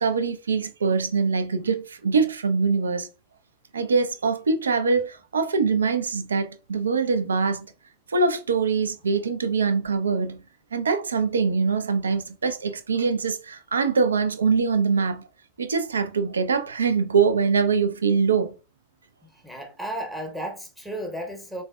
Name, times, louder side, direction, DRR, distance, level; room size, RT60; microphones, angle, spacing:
voice 1, 0.0-3.1 3.7-7.7 8.1-10.4 10.7-15.3 15.6-18.5, right 5 dB, 70° right, 0.4 m, -23 dB
voice 2, 19.3-21.6, right 1 dB, 5° right, 0.8 m, -34 dB
3.9 x 2.2 x 2.2 m
figure-of-eight pair, 90°, 0 cm